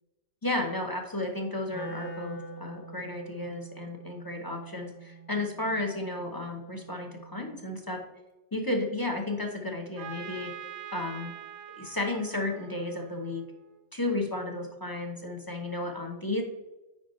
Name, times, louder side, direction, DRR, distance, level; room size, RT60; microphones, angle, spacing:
voice 1, 0.4-8.0 8.5-10.5 10.9-11.3 11.8-13.4 13.9-16.4, left 2 dB, 25° left, 2 dB, 0.5 m, -33 dB
Wind instrument woodwind instrument, 1.7-7.8, right 2 dB, 65° left, 1.4 m, -45 dB
Trumpet, 10.0-13.7, right 8 dB, 60° right, 0.7 m, -44 dB
9.7 x 4.9 x 3.1 m, 1.0 s
omnidirectional pair, 1.8 m